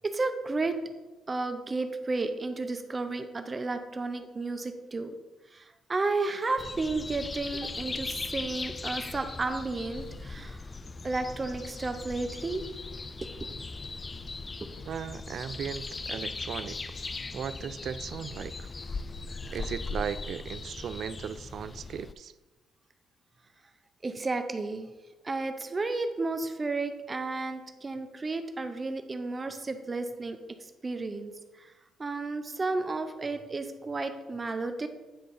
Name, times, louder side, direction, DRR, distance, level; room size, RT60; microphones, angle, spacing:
voice 1, 0.0-0.8 1.3-5.2 5.5-10.6 11.0-12.7 13.2-13.3 24.0-24.9 25.2-31.3 31.6-31.7 32.0-34.9, right 3 dB, 30° right, 8 dB, 0.7 m, -32 dB
sound 1, 6.6-22.1, left 3 dB, 30° left, 0.3 m, -39 dB
voice 2, 14.9-16.8 17.3-18.7 19.5-22.3, right 8 dB, 65° right, 15 dB, 0.4 m, -37 dB
9.5 x 3.8 x 5.4 m, 1.2 s
cardioid pair, 90°, 0 cm